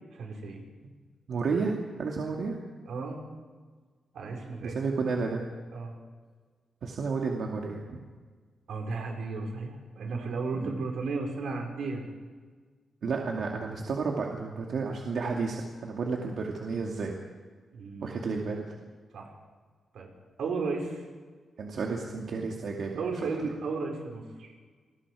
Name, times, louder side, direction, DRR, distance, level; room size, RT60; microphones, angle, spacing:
voice 1, 0.1-0.6 2.9-3.2 4.1-4.8 5.7-5.9 8.7-12.1 17.7-18.2 19.1-19.3 19.9-20.1 20.4-21.0 22.9-24.5, right 4 dB, 85° right, 1 dB, 5.3 m, -34 dB
voice 2, 1.3-2.6 4.6-5.4 6.8-8.0 10.5-10.7 13.0-17.2 18.0-18.6 21.6-23.3, right 4 dB, 60° right, 0 dB, 2.4 m, -32 dB
29.0 x 21.0 x 5.0 m, 1.5 s
wide cardioid pair, 155°, 0 cm